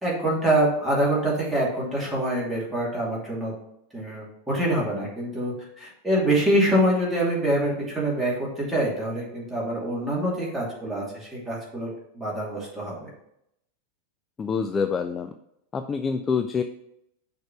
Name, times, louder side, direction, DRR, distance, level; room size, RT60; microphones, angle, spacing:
voice 1, 0.0-3.5 3.9-13.1, right 1 dB, 5° right, -5 dB, 2.6 m, -25 dB
voice 2, 14.4-15.3 15.7-16.6, left 5 dB, 20° left, 7 dB, 0.3 m, -26 dB
6.3 x 3.5 x 5.8 m, 0.77 s
figure-of-eight pair, 90°, 0 cm